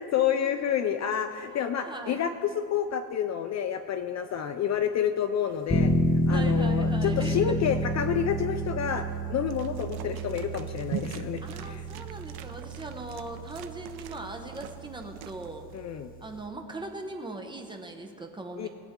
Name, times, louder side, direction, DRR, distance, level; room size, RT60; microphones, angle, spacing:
voice 1, 0.0-5.9 6.3-11.9 15.7-16.1 18.6-18.7, left 8 dB, 40° left, 8 dB, 0.4 m, -29 dB
voice 2, 1.5-2.2 6.3-7.9 11.4-15.7 16.2-18.7, right 2 dB, 10° right, 3 dB, 0.8 m, -40 dB
sound 1, 5.7-16.4, equal, 20° left, 1.0 m, -30 dB
sound 2, 9.5-15.8, right 10 dB, 60° right, 0.7 m, -43 dB
20.5 x 8.6 x 3.6 m, 2.4 s
cardioid pair, 155°, 43 cm